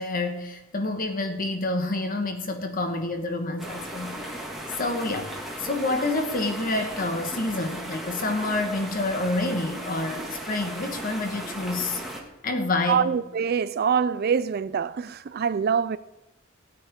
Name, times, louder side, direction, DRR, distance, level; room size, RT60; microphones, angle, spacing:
voice 1, 0.0-4.5 4.8-5.3 5.6-12.0 12.4-13.2, left 2 dB, 45° left, 1.5 m, -28 dB
sound 1, 3.6-12.2, right 1 dB, ahead, 1.9 m, -36 dB
voice 2, 12.9-16.0, right 7 dB, 50° right, 0.4 m, -24 dB
18.0 x 9.0 x 3.7 m
head